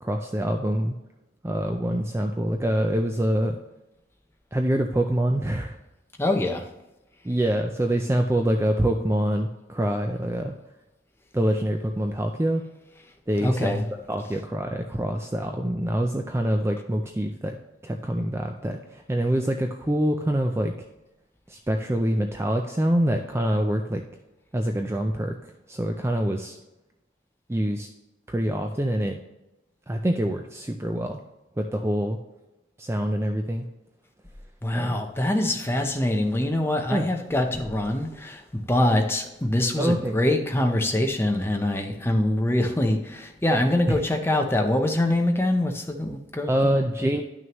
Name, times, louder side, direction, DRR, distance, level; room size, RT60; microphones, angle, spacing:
voice 1, 0.0-0.9 1.4-3.6 4.5-5.8 7.2-10.6 11.3-12.6 13.3-13.8 14.1-17.6 17.8-20.7 21.5-24.0 24.5-26.6 27.5-27.9 28.3-29.2 29.9-31.2 31.6-32.2 32.8-33.7 34.7-34.9 36.9-37.1 39.8-40.2 46.5-47.2, right 1 dB, 15° right, 4 dB, 0.4 m, -25 dB
voice 2, 6.2-6.7 13.4-13.8 34.6-46.8, left 1 dB, 10° left, 4 dB, 0.7 m, -24 dB
11.0 x 6.2 x 3.0 m, 0.99 s
head